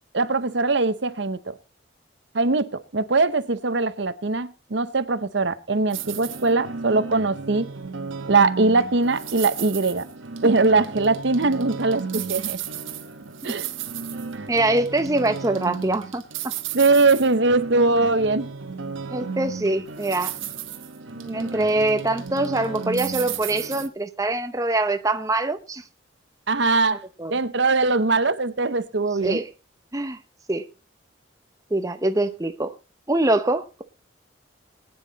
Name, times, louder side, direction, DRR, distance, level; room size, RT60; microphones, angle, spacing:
voice 1, 0.1-1.5 2.3-2.7 2.9-7.6 8.3-10.0 10.4-12.6 13.4-13.7 16.7-18.5 26.5-27.0 27.3-29.4, right 3 dB, 65° right, 0.9 m, -21 dB
sound 1, 5.9-23.9, right 6 dB, 85° right, 1.3 m, -33 dB
voice 2, 14.5-16.5 19.1-20.3 21.1-25.8 27.2-27.4 29.2-29.5 29.9-30.2 30.5-30.7 31.7-32.7 33.1-33.8, right 2 dB, 15° right, 0.7 m, -24 dB
20.0 x 9.7 x 4.0 m
head